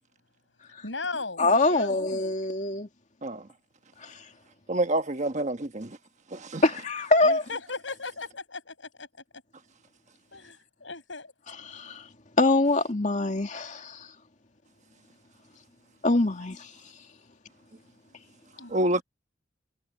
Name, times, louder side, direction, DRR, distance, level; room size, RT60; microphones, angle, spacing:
voice 1, 0.8-2.1 7.2-9.1 10.3-11.3 18.6-18.7, left 3 dB, 75° left, 7.5 m, -37 dB
voice 2, 1.4-2.9 4.0-4.1 6.6-7.4 11.6-12.0 12.4-14.1 16.0-16.7, left 2 dB, 40° left, 2.3 m, -24 dB
voice 3, 4.7-5.9 6.3-6.6 18.7-19.0, right 1 dB, 40° right, 1.3 m, -27 dB
head